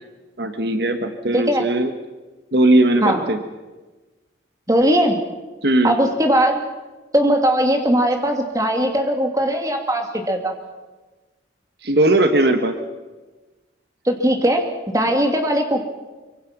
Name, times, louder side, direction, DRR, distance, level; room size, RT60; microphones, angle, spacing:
voice 1, 0.4-1.9 2.5-3.4 5.6-6.0 11.8-12.7, right 1 dB, 60° right, 7 dB, 1.4 m, -18 dB
voice 2, 1.3-1.6 3.0-3.2 4.7-5.2 5.8-6.6 7.1-10.5 14.0-15.8, equal, 20° right, 3 dB, 2.5 m, -19 dB
24.5 x 24.0 x 6.1 m, 1.2 s
head